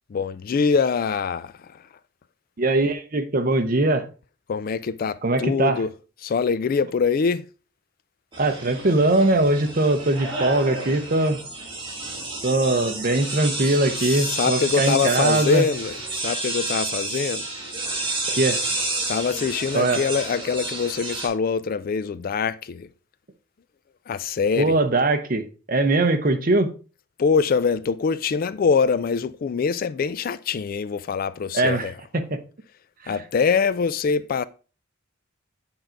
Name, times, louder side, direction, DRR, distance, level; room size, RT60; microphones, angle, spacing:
voice 1, 0.1-1.8 4.5-5.9 6.2-7.4 14.0-17.4 19.1-22.9 24.1-24.7 27.2-31.9 33.1-34.5, left 5 dB, 45° left, 0.3 m, -24 dB
voice 2, 2.6-4.1 5.2-5.8 8.4-11.4 12.4-15.6 18.3-18.6 19.7-20.0 24.6-25.4 25.7-26.7 31.5-32.4 33.0-33.1, right 2 dB, 45° right, 0.8 m, -21 dB
sound 1, 8.3-21.3, right 2 dB, 25° right, 2.3 m, -30 dB
8.7 x 3.9 x 4.4 m
head